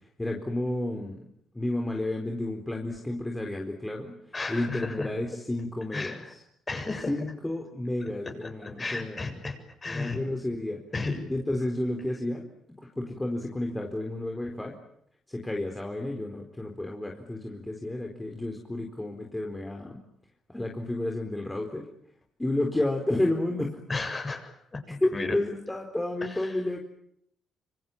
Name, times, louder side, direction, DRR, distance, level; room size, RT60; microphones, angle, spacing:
voice 1, 0.2-1.3 1.5-4.2 4.5-6.4 7.1-9.2 9.9-10.8 11.3-12.5 12.8-14.8 15.3-20.0 20.5-21.9 22.4-23.8 25.0-26.8, left 1 dB, 10° left, 2 dB, 4.3 m, -31 dB
voice 2, 4.3-5.1 5.9-6.3 6.7-7.1 8.4-9.6 9.8-10.2 10.9-11.2 23.9-24.8 25.1-25.4 26.3-26.5, left 3 dB, 25° left, 7 dB, 7.4 m, -33 dB
26.5 x 25.0 x 8.9 m, 0.74 s
cardioid pair, 90°, 0 cm